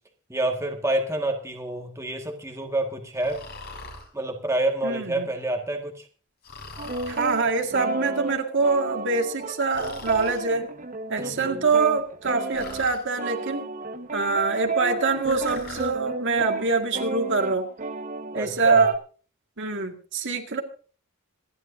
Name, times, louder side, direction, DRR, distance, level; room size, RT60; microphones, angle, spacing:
voice 1, 0.3-3.4 4.1-6.1 11.2-11.6 18.3-18.8, right 1 dB, 15° right, 2 dB, 1.9 m, -28 dB
Breathing, 3.2-4.1 6.4-7.4 9.7-10.4 12.5-13.0 15.2-15.9, left 3 dB, 45° left, 5.0 m, -41 dB
voice 2, 4.8-5.3 7.1-10.7 11.1-13.7 14.1-17.7 18.3-18.9 19.6-20.6, right 4 dB, 55° right, 4 dB, 2.0 m, -24 dB
sound 1, 6.8-19.0, right 3 dB, 35° right, 1.4 m, -32 dB
26.5 x 11.0 x 2.7 m, 0.40 s
head